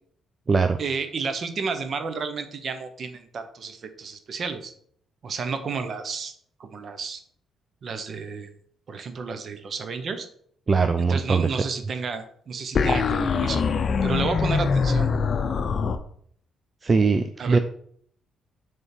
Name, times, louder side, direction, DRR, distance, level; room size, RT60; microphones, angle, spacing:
voice 1, 0.8-4.7 5.2-6.3 6.6-7.2 7.8-8.5 8.9-10.3 11.1-13.6 14.0-15.1 17.4-17.6, right 5 dB, 50° right, 9 dB, 0.9 m, -31 dB
voice 2, 10.7-11.6 16.8-17.6, right 4 dB, 35° right, 8 dB, 0.4 m, -21 dB
sound 1, 12.8-16.0, left 5 dB, 50° left, 0.6 m, -23 dB
6.6 x 3.6 x 4.4 m, 0.62 s
cardioid pair, 90°, 0 cm